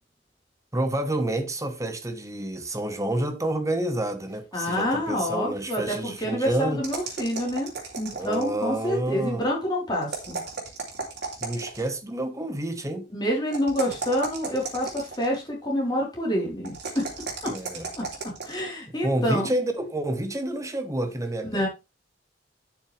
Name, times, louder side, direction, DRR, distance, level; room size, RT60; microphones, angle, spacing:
voice 1, 0.7-6.8 8.1-9.5 11.4-13.1 17.5-17.9 19.0-21.7, right 1 dB, 20° right, 1.2 m, -29 dB
voice 2, 4.5-7.7 8.0-10.4 13.1-17.1 17.4-17.5 18.0-18.1 18.5-19.5 21.4-21.7, equal, 25° left, 3.9 m, -27 dB
sound 1, 6.8-8.6 10.0-11.9 13.5-15.3 16.6-18.6, right 4 dB, 65° right, 3.2 m, -35 dB
11.0 x 6.3 x 3.3 m
head